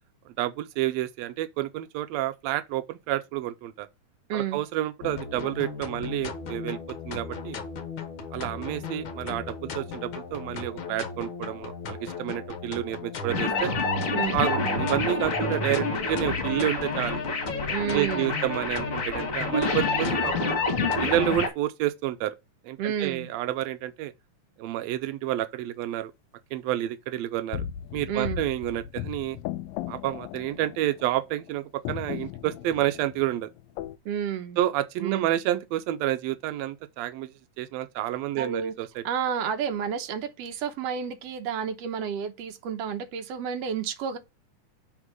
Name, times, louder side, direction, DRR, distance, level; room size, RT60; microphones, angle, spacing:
voice 1, 0.3-3.9 4.3-6.8 7.0-7.6 8.3-13.7 14.3-17.2 17.9-20.6 21.0-22.3 22.6-24.1 24.6-26.1 26.5-27.6 27.9-29.4 29.9-33.5 34.6-37.3 37.6-39.0, right 13 dB, 90° right, 1.5 m, -29 dB
sound 1, 5.0-21.3, left 3 dB, 60° left, 1.3 m, -36 dB
sound 2, 13.3-21.5, left 3 dB, 35° left, 1.4 m, -28 dB
voice 2, 17.7-18.4 22.8-23.3 28.1-28.4 34.1-34.6 35.0-35.3 38.4-38.7 39.0-44.2, right 7 dB, 65° right, 1.8 m, -30 dB
sound 3, 27.5-31.5 31.9-34.0, left 11 dB, 85° left, 1.5 m, -37 dB
7.3 x 3.7 x 6.2 m
omnidirectional pair, 3.7 m